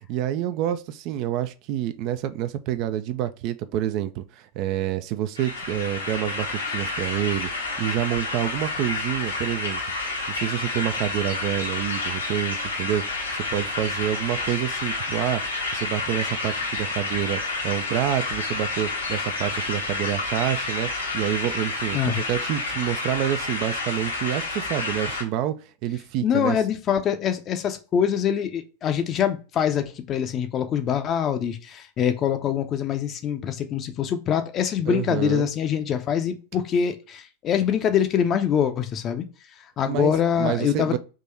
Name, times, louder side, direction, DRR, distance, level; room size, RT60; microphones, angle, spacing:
voice 1, 0.1-15.4 15.7-25.5 25.8-26.6 34.9-35.5 39.9-41.0, right 12 dB, 40° right, 0.4 m, -28 dB
sound 1, 5.4-25.2, left 3 dB, 75° left, 1.0 m, -29 dB
voice 2, 26.2-39.3 39.8-41.0, left 8 dB, 30° left, 0.6 m, -24 dB
3.7 x 3.0 x 4.3 m
figure-of-eight pair, 90°, 0 cm